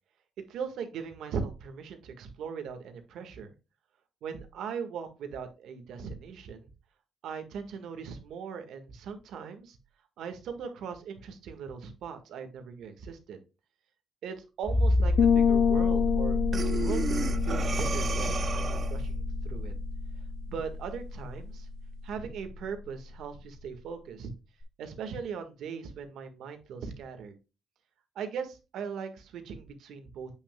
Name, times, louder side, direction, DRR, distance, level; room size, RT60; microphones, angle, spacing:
voice 1, 0.4-3.5 4.2-6.7 7.2-9.8 10.2-13.4 14.2-16.4 16.7-19.7 20.5-21.7 22.0-24.3 24.8-27.3 28.1-30.3, right 6 dB, 85° right, 7 dB, 1.6 m, -39 dB
sound 1, 14.6-23.1 24.6-24.7, left 2 dB, 15° left, 1.2 m, -30 dB
sound 2, 15.2-18.9, left 8 dB, 60° left, 0.6 m, -27 dB
Breathing, 16.5-19.1, right 5 dB, 40° right, 0.4 m, -34 dB
8.2 x 6.3 x 2.3 m, 0.29 s
cardioid pair, 145°, 0 cm